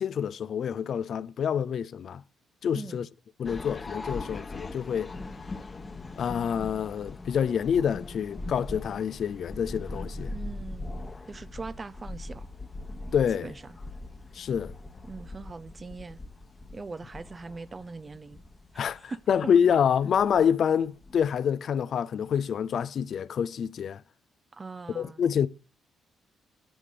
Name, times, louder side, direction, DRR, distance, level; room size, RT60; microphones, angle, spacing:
voice 1, 0.0-2.2 2.6-3.1 3.4-5.1 6.2-10.3 13.1-13.5 14.3-14.7 18.8-24.0 24.9-25.5, left 8 dB, 60° left, 0.3 m, -27 dB
voice 2, 2.7-3.1 10.3-11.0 11.3-12.5 13.3-13.8 15.1-16.2 16.7-18.4 18.7-19.2 24.5-25.2, right 3 dB, 25° right, 0.4 m, -41 dB
sound 1, 3.4-21.4, left 2 dB, 25° left, 1.1 m, -41 dB
10.0 x 3.6 x 6.6 m
cardioid pair, 90°, 0 cm